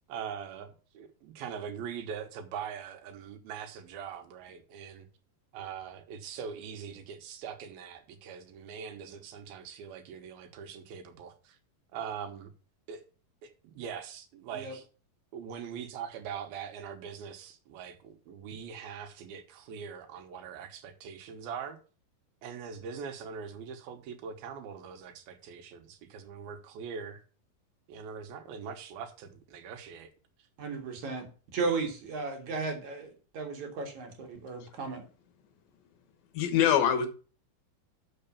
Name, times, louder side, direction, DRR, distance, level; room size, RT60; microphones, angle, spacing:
voice 1, 0.1-5.1 5.5-11.6 11.9-12.5 12.9-13.0 13.4-14.9 15.3-21.8 22.4-27.2 27.9-30.1, right 7 dB, 80° right, 3.0 m, -42 dB
voice 2, 30.6-31.3 31.5-35.0, right 4 dB, 55° right, 3.0 m, -35 dB
voice 3, 36.3-37.1, left 9 dB, 75° left, 2.9 m, -24 dB
6.8 x 6.5 x 7.0 m
omnidirectional pair, 4.3 m